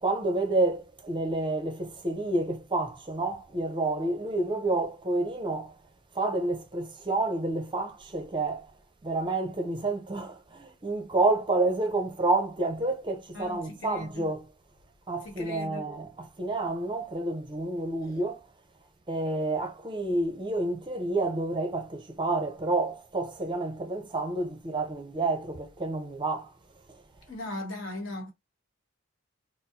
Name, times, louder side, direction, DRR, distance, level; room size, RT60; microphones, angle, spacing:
voice 1, 0.0-5.8 6.1-8.7 9.0-14.5 15.1-18.4 19.1-26.5 26.9-27.0, right 2 dB, 25° right, 0.6 m, -29 dB
voice 2, 13.3-14.3 15.2-15.9 27.3-28.3, left 2 dB, 60° left, 1.2 m, -38 dB
4.2 x 2.0 x 2.7 m
head